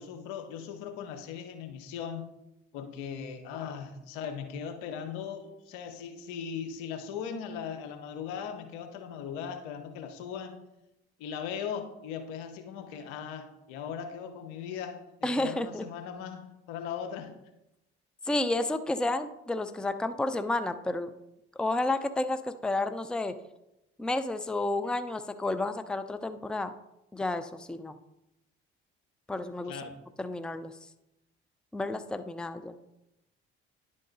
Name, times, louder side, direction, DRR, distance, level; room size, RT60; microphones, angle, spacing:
voice 1, 0.0-2.3 2.7-10.6 11.2-17.3 29.7-30.0, left 7 dB, 80° left, 6 dB, 1.0 m, -39 dB
voice 2, 15.2-15.9 18.3-21.1 21.6-23.3 24.0-26.7 27.1-28.0 29.3-29.7 30.2-30.7 31.7-32.8, left 2 dB, 5° left, 10 dB, 0.5 m, -31 dB
10.5 x 3.8 x 4.0 m, 0.89 s
hypercardioid pair, 60°, 31 cm